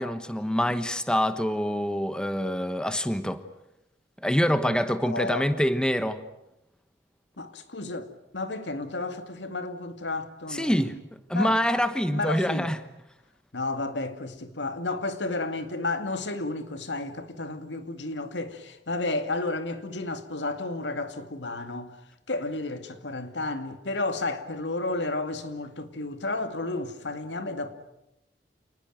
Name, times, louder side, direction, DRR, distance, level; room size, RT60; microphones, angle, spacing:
voice 1, 0.0-3.4 4.2-6.2 10.5-11.0 11.3-12.8, equal, 5° left, 1.1 m, -25 dB
voice 2, 5.0-5.5 7.4-8.1 8.3-10.9 11.3-11.6 12.1-12.7 13.5-22.0 22.3-27.7, left 2 dB, 85° left, 2.3 m, -32 dB
28.0 x 20.0 x 9.2 m
head